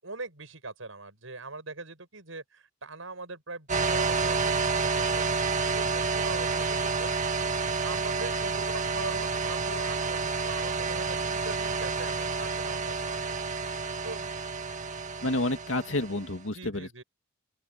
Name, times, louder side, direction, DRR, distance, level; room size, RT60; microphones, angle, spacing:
voice 1, 0.0-5.3 5.7-7.1 7.8-13.4 14.0-14.3 16.5-17.0, right 3 dB, 80° right, 7.0 m, -41 dB
sound 1, 3.7-16.3, right 4 dB, 40° right, 1.9 m, -29 dB
voice 2, 15.2-17.0, left 1 dB, 75° left, 2.3 m, -30 dB
open air
head